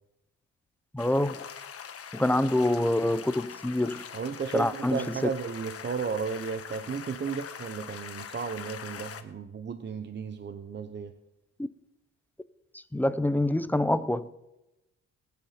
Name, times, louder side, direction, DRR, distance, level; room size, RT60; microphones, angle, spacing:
voice 1, 0.9-1.4 2.1-4.0 4.5-5.0 11.6-11.7 12.9-14.3, left 1 dB, 5° left, 0.8 m, -26 dB
sound 1, 1.0-9.2, left 7 dB, 50° left, 1.5 m, -43 dB
voice 2, 4.1-11.2, right 5 dB, 35° right, 1.0 m, -34 dB
20.5 x 8.3 x 5.9 m
cardioid pair, 90°, 30 cm